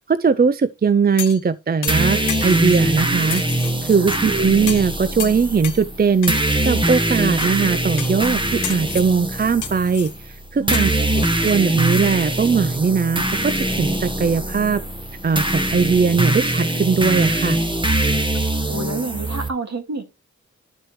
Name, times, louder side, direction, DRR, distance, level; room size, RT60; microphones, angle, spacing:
voice 1, 0.1-3.4 3.8-10.9 11.4-14.8 15.2-17.6, right 5 dB, 35° right, 0.5 m, -19 dB
sound 1, 1.2-1.5 1.8-2.8 3.3-4.2 4.7-4.9 5.2-5.8 6.2-6.7 7.4-7.6 8.0-8.3 8.6-9.1 9.6-10.1 10.7-12.1 12.4-12.5, left 9 dB, 85° left, 0.6 m, -32 dB
sound 2, 1.9-19.5, right 1 dB, 15° right, 1.2 m, -22 dB
voice 2, 10.6-11.1 18.7-20.1, right 3 dB, 65° right, 2.2 m, -29 dB
11.5 x 4.6 x 3.1 m
cardioid pair, 45°, 29 cm